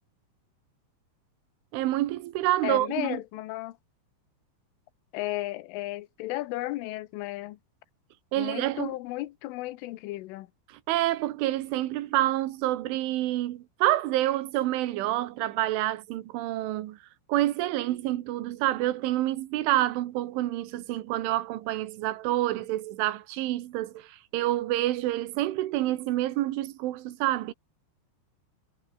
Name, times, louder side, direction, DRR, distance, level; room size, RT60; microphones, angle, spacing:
voice 1, 1.7-3.2 8.3-9.0 10.9-17.0 17.3-27.5, right 15 dB, 80° right, 3.8 m, -28 dB
voice 2, 2.6-3.8 5.1-7.6 8.4-10.5, left 17 dB, 90° left, 3.6 m, -34 dB
omnidirectional pair, 5.5 m